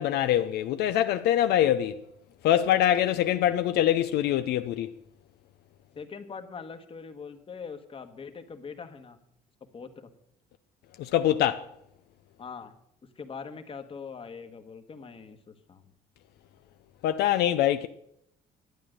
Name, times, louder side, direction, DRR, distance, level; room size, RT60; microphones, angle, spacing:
voice 1, 0.0-2.0 2.4-4.9 11.0-11.7 17.0-17.9, left 11 dB, 75° left, 0.5 m, -24 dB
voice 2, 5.9-9.2 9.7-10.1 12.4-12.7 13.2-15.8, left 5 dB, 35° left, 1.3 m, -42 dB
11.5 x 8.5 x 6.4 m
cardioid pair, 110°, 17 cm